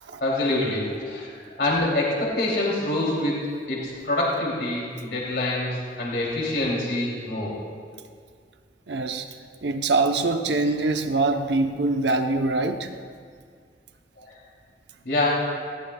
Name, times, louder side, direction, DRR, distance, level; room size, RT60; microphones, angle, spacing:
voice 1, 0.2-7.6 14.2-14.3 15.0-15.3, left 2 dB, 70° left, -4 dB, 3.0 m, -26 dB
voice 2, 8.9-9.3 9.6-12.9, right 3 dB, 80° right, 6 dB, 0.8 m, -24 dB
19.5 x 17.5 x 2.3 m, 2.1 s
head